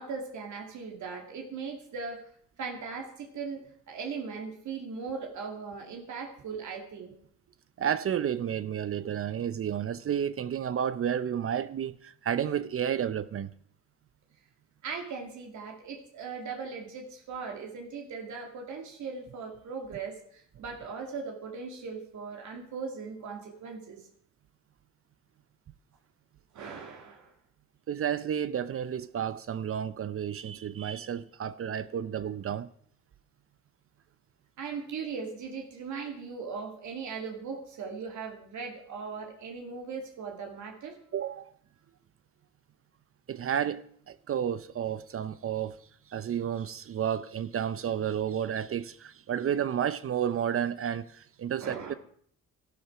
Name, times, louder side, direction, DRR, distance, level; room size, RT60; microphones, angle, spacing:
voice 1, 0.0-2.3 2.6-7.1 14.8-24.0 26.5-27.3 34.6-41.0 51.6-52.0, right 5 dB, 70° right, 2.5 m, -39 dB
voice 2, 7.8-13.5 27.9-32.7 41.1-41.5 43.3-45.8 46.1-51.9, right 9 dB, 45° right, 0.6 m, -31 dB
12.5 x 11.5 x 6.0 m
cardioid pair, 90°, 30 cm